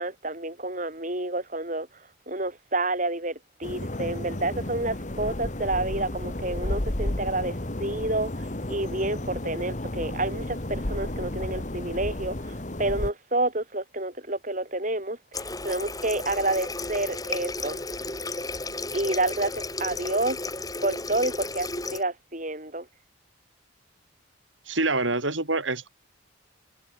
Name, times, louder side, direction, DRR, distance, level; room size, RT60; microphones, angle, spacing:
voice 1, 0.0-1.9 2.3-17.8 18.9-20.4 20.8-22.9, right 2 dB, 40° right, 7.7 m, -29 dB
sound 1, 3.6-13.1, left 1 dB, 40° left, 1.7 m, -32 dB
Water tap faucet, 15.3-22.0, left 2 dB, 20° left, 7.1 m, -33 dB
voice 2, 24.7-25.9, right 2 dB, 80° right, 5.7 m, -26 dB
head